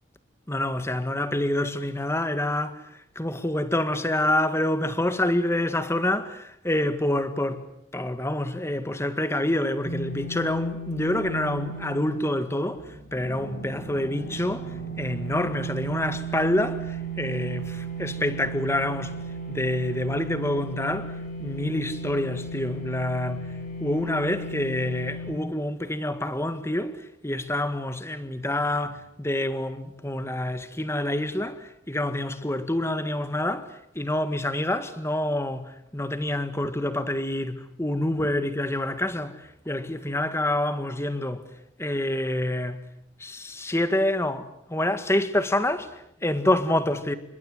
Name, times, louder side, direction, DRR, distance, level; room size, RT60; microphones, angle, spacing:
voice 1, 0.5-7.7 7.9-19.2 19.5-23.5 23.8-41.5 41.8-42.9 43.2-47.1, left 1 dB, 15° left, 1.8 m, -27 dB
sound 1, 9.8-25.3, right 3 dB, 50° left, 7.9 m, -36 dB
29.0 x 25.5 x 8.0 m
head